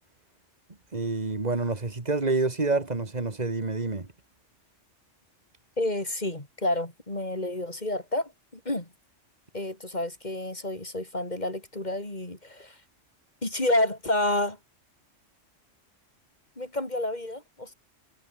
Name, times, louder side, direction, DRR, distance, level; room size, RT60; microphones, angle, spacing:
voice 1, 0.9-4.1, right 3 dB, 35° right, 2.3 m, -28 dB
voice 2, 5.8-8.9 9.5-12.8 13.4-14.6 16.6-17.7, left 1 dB, 35° left, 4.3 m, -29 dB
omnidirectional pair, 1.3 m